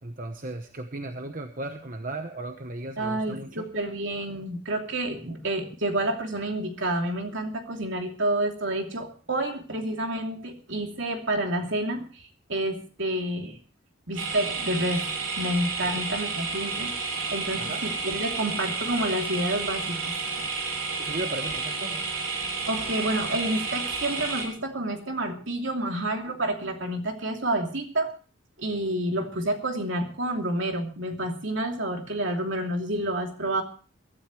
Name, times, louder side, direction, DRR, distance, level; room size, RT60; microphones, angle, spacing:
voice 1, 0.0-3.6 15.9-16.0 17.6-17.9 21.0-22.0, right 2 dB, 40° right, 6 dB, 1.0 m, -36 dB
voice 2, 3.0-13.6 14.1-15.1 15.3-20.0 20.3-20.5 21.0-21.1 22.7-28.1 28.6-33.6, right 1 dB, 65° right, 3 dB, 2.9 m, -29 dB
sound 1, 14.2-24.5, right 4 dB, 85° right, 4.4 m, -31 dB
23.0 x 12.5 x 3.2 m, 0.39 s
head